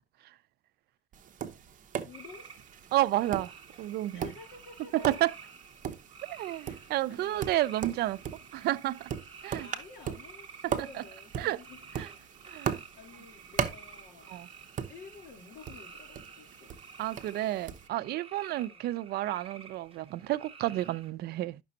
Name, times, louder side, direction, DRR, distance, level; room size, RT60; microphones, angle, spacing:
Tap, 1.1-17.9, right 8 dB, 50° right, 0.9 m, -39 dB
voice 1, 2.0-2.5 4.1-5.2 6.6-7.4 9.6-11.8 12.1-12.3 12.9-14.3 14.9-16.7 18.6-18.9, left 5 dB, 70° left, 3.2 m, -51 dB
sound 1, 2.1-21.1, right 5 dB, 35° right, 1.4 m, -51 dB
voice 2, 2.9-3.5 3.8-4.3 4.9-5.3 6.2-8.2 8.5-9.1 9.4-9.7 10.6-11.0 11.4-11.6 12.0-12.1 12.5-12.8 14.3-14.5 17.0-21.6, right 15 dB, 70° right, 0.5 m, -31 dB
10.5 x 6.0 x 2.7 m
cardioid pair, 110°, 17 cm